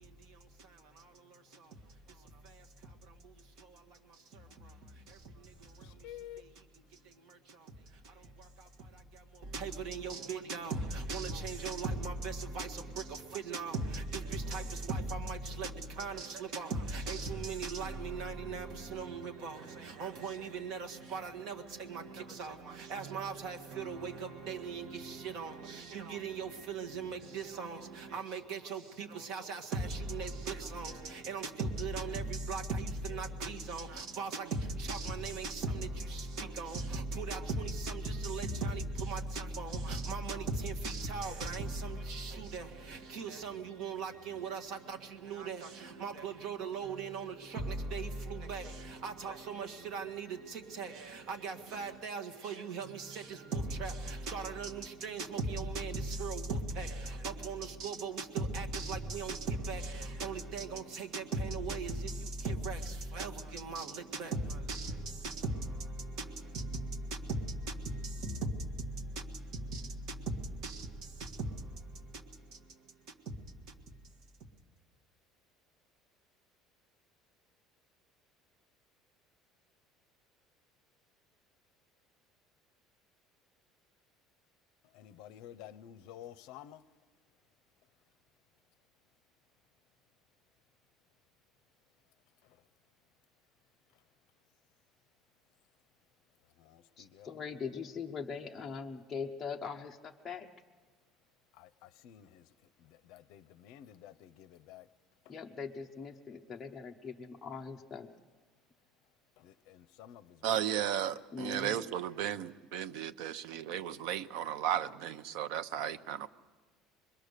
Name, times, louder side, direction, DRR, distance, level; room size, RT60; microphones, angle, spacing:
voice 1, 0.0-6.1 6.4-6.6 6.9-74.5, right 3 dB, 50° right, 1.8 m, -39 dB
voice 2, 5.8-6.5 84.8-86.9 92.4-92.7 93.9-94.0 96.4-97.5 101.5-104.9 105.2-105.4 109.4-110.6 112.7-112.8, left 11 dB, 65° left, 0.7 m, -52 dB
voice 3, 97.0-100.5 105.3-108.1 111.3-111.8, left 5 dB, 15° left, 0.8 m, -41 dB
voice 4, 110.4-116.3, right 10 dB, 75° right, 0.8 m, -35 dB
26.0 x 21.5 x 6.7 m
cardioid pair, 180°, 0 cm